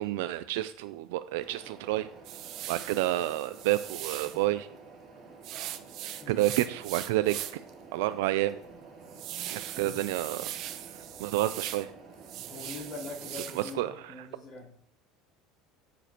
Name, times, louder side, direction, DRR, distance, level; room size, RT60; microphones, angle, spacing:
voice 1, 0.0-2.1 2.7-4.7 6.3-7.4 7.9-8.6 9.4-10.4 10.9-11.9 13.3-14.1, right 15 dB, 80° right, 12 dB, 0.3 m, -29 dB
sound 1, 1.4-13.4, right 4 dB, 40° right, 2.7 m, -50 dB
sound 2, 2.2-4.4 5.4-7.7 8.1-8.2 8.7-11.9 12.2-13.7, right 12 dB, 55° right, 0.7 m, -40 dB
voice 2, 12.5-14.8, left 3 dB, 45° left, -9 dB, 3.8 m, -43 dB
9.1 x 7.1 x 2.9 m, 0.64 s
supercardioid pair, 110°, 0 cm